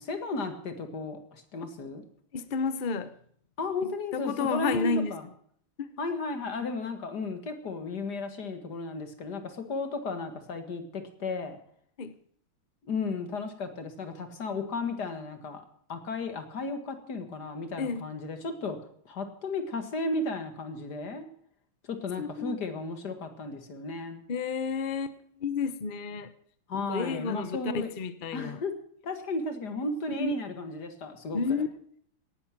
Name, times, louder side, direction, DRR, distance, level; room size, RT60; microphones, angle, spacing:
voice 1, 0.0-2.0 3.6-5.2 6.0-11.6 12.8-15.6 15.9-18.8 19.1-21.3 21.8-24.2 26.7-27.9 28.3-28.7 29.0-31.4, left 3 dB, 50° left, 2.3 m, -34 dB
voice 2, 2.3-3.2 4.1-5.1 5.8-5.9 12.0-12.1 17.8-18.1 22.2-22.6 24.3-26.3 26.8-28.6 30.2-30.3 31.3-31.7, left 5 dB, 70° left, 0.4 m, -31 dB
17.5 x 11.0 x 6.0 m
omnidirectional pair, 2.4 m